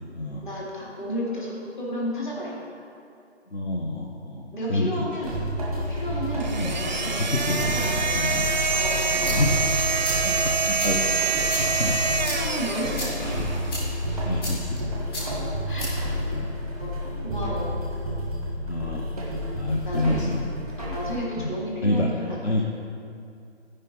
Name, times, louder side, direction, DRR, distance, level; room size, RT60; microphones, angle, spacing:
voice 1, 0.4-2.5 4.5-5.3 5.7-8.1 8.7-9.4 10.1-10.3 12.3-13.4 15.2-15.9 16.7-16.9 17.2-17.7 19.9-20.2 20.8-22.4, equal, 45° left, -5 dB, 2.6 m, -33 dB
voice 2, 3.5-5.1 6.5-6.7 7.2-8.4 9.3-9.5 10.2-11.2 11.5-12.2 13.4-13.7 14.2-15.0 16.3-16.5 18.6-19.1 19.5-20.5 21.4-21.6 21.8-22.1 22.4-22.6, left 1 dB, 70° left, -2 dB, 1.1 m, -28 dB
sound 1, 5.2-21.2, equal, ahead, 0.8 m, -30 dB
sound 2, 6.4-13.8, right 5 dB, 40° right, 0.4 m, -26 dB
sound 3, 9.0-17.0, left 1 dB, 20° left, 2.4 m, -36 dB
14.0 x 5.1 x 4.4 m, 2.4 s
figure-of-eight pair, 155°, 35 cm